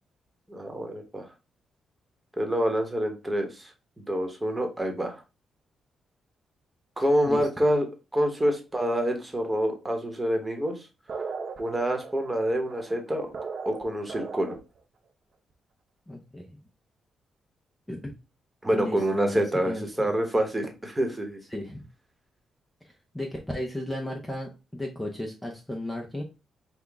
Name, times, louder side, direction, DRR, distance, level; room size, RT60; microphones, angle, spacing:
voice 1, 0.5-1.3 2.4-3.7 4.0-5.2 7.0-7.9 8.1-10.7 11.6-13.3 13.6-14.6 18.6-21.4, equal, 15° right, 4 dB, 1.1 m, -27 dB
voice 2, 7.2-7.6 16.1-16.7 17.9-18.0 18.7-20.1 21.5-21.8 22.8-26.2, left 1 dB, 10° left, 1 dB, 0.7 m, -35 dB
sound 1, 11.1-14.8, right 4 dB, 50° right, 0.7 m, -37 dB
5.8 x 2.3 x 3.5 m, 0.29 s
cardioid pair, 105°, 0 cm